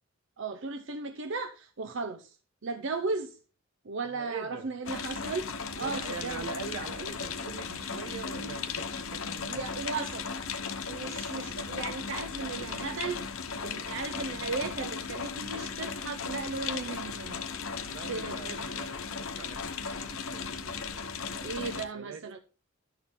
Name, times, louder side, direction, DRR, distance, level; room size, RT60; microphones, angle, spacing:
voice 1, 0.4-2.4 2.6-3.4 3.8-6.5 9.5-10.3 10.9-17.5 18.1-18.6 21.4-22.4, right 4 dB, 60° right, 0.6 m, -36 dB
voice 2, 4.1-4.7 5.8-9.6 17.8-22.2, right 4 dB, 80° right, 1.3 m, -43 dB
sound 1, 4.9-21.8, left 5 dB, 70° left, 1.0 m, -36 dB
11.5 x 6.6 x 3.6 m
head